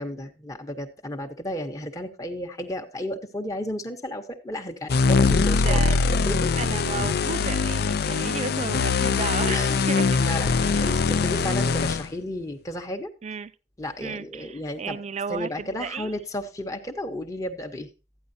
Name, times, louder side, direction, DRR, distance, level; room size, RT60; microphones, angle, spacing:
voice 1, 0.0-6.5 9.5-9.9 10.2-13.1 13.8-15.0 15.3-17.9, left 1 dB, 20° left, 0.9 m, -33 dB
sound 1, 4.9-12.1, left 4 dB, 60° left, 0.5 m, -22 dB
voice 2, 5.6-6.0 6.6-10.2 10.6-10.9 13.2-13.5 14.0-16.2, right 5 dB, 40° right, 0.4 m, -33 dB
12.5 x 9.5 x 2.7 m
head